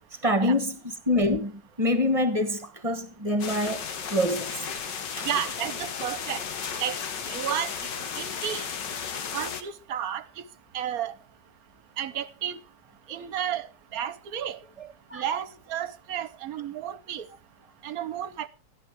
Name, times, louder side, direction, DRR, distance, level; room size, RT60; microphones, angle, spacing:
voice 1, 0.2-3.8 4.1-4.6 5.2-5.3 15.1-15.3, left 1 dB, 20° right, 1.4 m, -26 dB
sound 1, 3.4-9.6, left 6 dB, 85° left, 2.0 m, -34 dB
voice 2, 5.2-6.4 6.8-7.0 7.3-8.7 9.3-10.2 10.7-11.1 12.0-12.6 13.1-13.7 13.9-14.6 15.1-17.3 17.8-18.5, right 9 dB, 60° right, 1.2 m, -32 dB
13.0 x 12.0 x 4.7 m
omnidirectional pair, 1.9 m